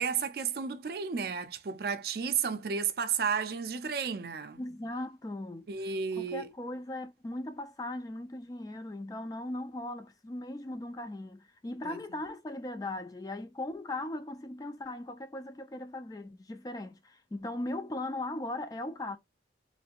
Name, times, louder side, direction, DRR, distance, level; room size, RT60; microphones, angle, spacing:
voice 1, 0.0-4.6 5.7-6.5 11.8-12.0, right 6 dB, 55° right, 0.4 m, -32 dB
voice 2, 4.6-5.7 6.2-19.2, left 1 dB, 20° left, 0.3 m, -38 dB
3.1 x 2.5 x 2.8 m
head